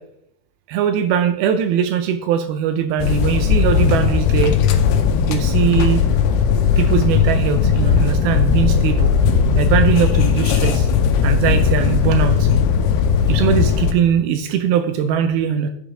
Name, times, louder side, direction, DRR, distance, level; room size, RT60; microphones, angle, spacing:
voice 1, 0.7-4.6 5.3-6.0 6.8-9.1 9.6-10.9 11.2-12.5 13.3-15.7, right 8 dB, 80° right, 8 dB, 2.2 m, -20 dB
sound 1, 3.0-13.9, left 6 dB, 85° left, 2.8 m, -17 dB
9.1 x 5.0 x 4.7 m, 0.78 s
omnidirectional pair, 4.6 m